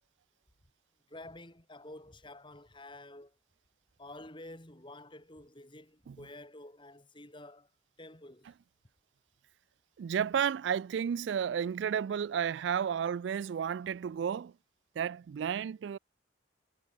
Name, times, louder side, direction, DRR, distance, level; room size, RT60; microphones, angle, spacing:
voice 1, 1.1-3.3 4.0-7.7 8.0-8.5, left 1 dB, 25° left, 6.4 m, -50 dB
voice 2, 10.0-14.5 15.0-16.0, right 8 dB, 65° right, 0.3 m, -32 dB
head